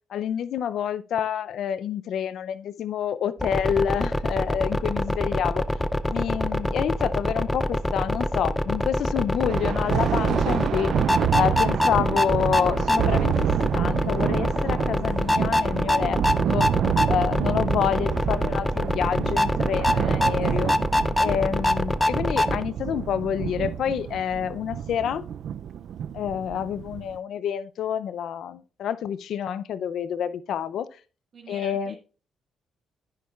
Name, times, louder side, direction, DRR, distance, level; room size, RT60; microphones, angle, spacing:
voice 1, 0.1-5.6 6.1-10.9 11.3-16.2 16.5-16.7 17.1-20.8 21.2-25.3 26.1-30.9 31.5-32.0, left 9 dB, 70° left, 0.5 m, -28 dB
sound 1, 3.4-22.6, left 1 dB, 10° left, 0.4 m, -25 dB
Thunder, 9.5-27.2, right 9 dB, 65° right, 0.3 m, -28 dB
sound 2, 12.1-21.5, right 3 dB, 30° right, 2.8 m, -56 dB
voice 2, 31.3-32.0, right 4 dB, 50° right, 1.7 m, -45 dB
10.5 x 9.3 x 2.4 m
cardioid pair, 90°, 0 cm